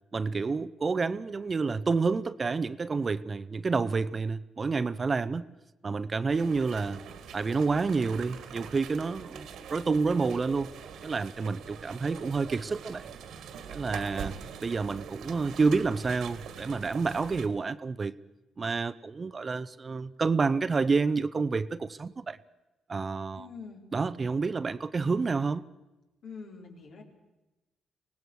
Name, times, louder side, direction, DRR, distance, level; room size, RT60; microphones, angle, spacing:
voice 1, 0.1-5.5 5.8-7.0 7.3-10.7 11.0-13.1 13.7-14.3 14.6-18.1 18.6-22.4 22.9-23.5 23.9-25.6, right 4 dB, 35° right, 0.7 m, -29 dB
sound 1, 6.3-17.5, right 7 dB, 80° right, 2.0 m, -44 dB
voice 2, 23.3-23.8 26.2-27.0, left 5 dB, 70° left, 4.3 m, -44 dB
25.0 x 18.0 x 6.4 m
cardioid pair, 90°, 0 cm